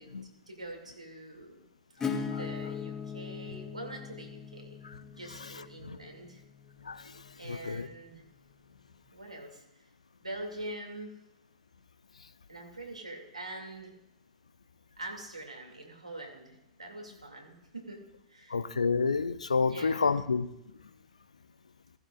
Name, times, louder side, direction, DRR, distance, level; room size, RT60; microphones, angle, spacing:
voice 1, 0.0-1.6 2.3-6.4 7.4-8.2 9.1-9.6 10.2-11.1 12.5-13.9 15.0-18.6 19.6-20.1, right 1 dB, 85° right, 1 dB, 2.5 m, -44 dB
Acoustic guitar / Strum, 2.0-7.5, left 6 dB, 20° left, 1.6 m, -39 dB
voice 2, 7.5-7.9 18.5-20.5, left 4 dB, 75° left, 15 dB, 0.5 m, -29 dB
15.0 x 15.0 x 2.5 m, 0.84 s
figure-of-eight pair, 100°, 4 cm